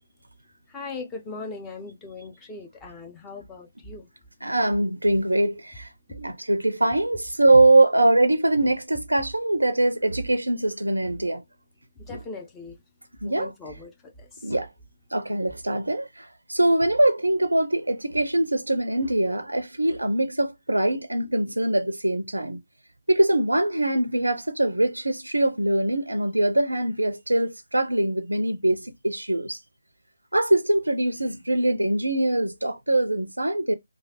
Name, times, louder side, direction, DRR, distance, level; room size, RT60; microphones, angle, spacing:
voice 1, 0.7-4.1 6.1-6.2 12.0-12.8 13.2-14.5, left 3 dB, 10° left, 0.5 m, -39 dB
voice 2, 4.4-11.4 13.2-13.5 14.4-14.7 15.1-22.6 23.1-29.6 30.3-33.7, right 1 dB, 80° right, 0.4 m, -23 dB
3.1 x 2.2 x 2.7 m
figure-of-eight pair, 150°, 0 cm